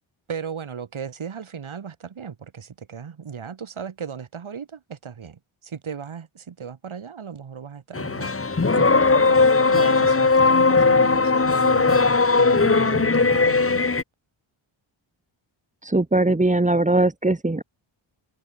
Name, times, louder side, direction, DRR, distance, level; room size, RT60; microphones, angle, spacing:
voice 1, 0.3-12.0 12.3-14.0, right 7 dB, 70° right, 7.4 m, -36 dB
sound 1, 7.9-14.0, left 3 dB, 25° left, 2.0 m, -18 dB
voice 2, 15.8-17.6, right 2 dB, 15° right, 1.6 m, -20 dB
wide cardioid pair, 100°, 49 cm